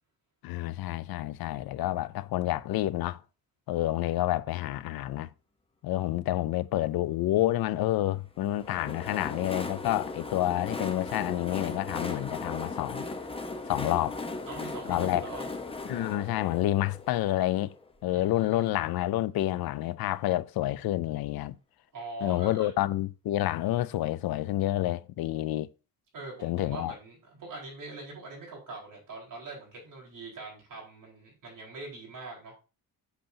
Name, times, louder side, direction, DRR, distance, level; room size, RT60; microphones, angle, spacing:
voice 1, 0.4-3.2 3.7-5.3 5.8-13.1 13.7-14.2 14.9-15.2 15.9-17.7 18.0-21.6 22.2-25.7 26.4-26.9, left 15 dB, 80° left, 0.5 m, -29 dB
Train, 8.4-18.1, left 3 dB, 15° left, 0.9 m, -38 dB
voice 2, 14.5-15.5 18.1-18.7 21.9-22.7 26.1-32.5, right 3 dB, 60° right, 4.4 m, -43 dB
8.0 x 6.8 x 2.7 m
wide cardioid pair, 150°, 36 cm